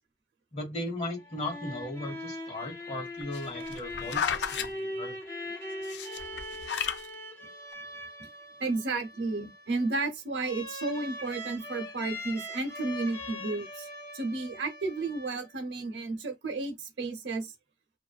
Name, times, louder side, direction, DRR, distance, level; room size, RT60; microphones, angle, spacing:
voice 1, 0.5-5.2, left 1 dB, 40° left, 1.1 m, -37 dB
sound 1, 1.1-15.8, left 1 dB, 15° left, 0.6 m, -41 dB
sound 2, 3.2-4.7 5.8-7.1 7.7-7.8, left 7 dB, 75° left, 0.4 m, -32 dB
voice 2, 8.6-13.9 14.1-17.5, right 3 dB, 85° right, 0.7 m, -32 dB
2.5 x 2.3 x 2.3 m
head